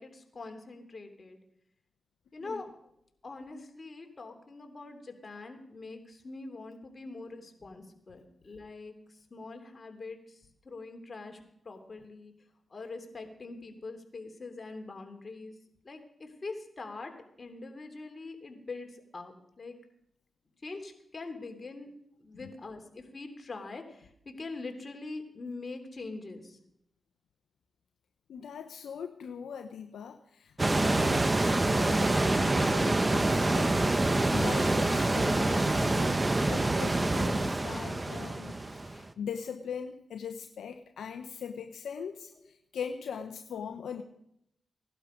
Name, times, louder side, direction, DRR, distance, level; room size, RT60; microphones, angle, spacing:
voice 1, 0.0-1.4 2.3-2.7 3.2-8.9 9.3-11.4 11.6-12.3 12.7-15.5 15.8-17.1 17.4-19.7 20.6-21.9 22.2-26.6, left 3 dB, 45° left, 5 dB, 3.1 m, -43 dB
voice 2, 28.3-33.7 34.0-44.0, left 7 dB, 85° left, 6 dB, 0.8 m, -41 dB
sound 1, 30.6-39.0, right 2 dB, 30° right, 1.3 m, -26 dB
17.5 x 11.5 x 5.2 m, 0.75 s
supercardioid pair, 45°, 0 cm